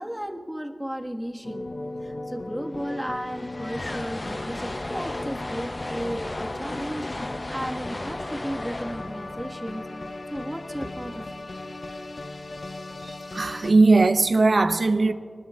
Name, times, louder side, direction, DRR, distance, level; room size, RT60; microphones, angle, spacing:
voice 1, 0.0-1.7 2.0-11.4, equal, 10° right, 1.4 m, -34 dB
sound 1, 1.4-13.7, left 2 dB, 80° left, 0.7 m, -37 dB
sound 2, 2.3-2.4 2.5-10.8, left 1 dB, 40° left, 0.6 m, -36 dB
voice 2, 13.3-15.1, right 3 dB, 75° right, 0.6 m, -19 dB
24.5 x 19.5 x 2.3 m
wide cardioid pair, 50°, 0 cm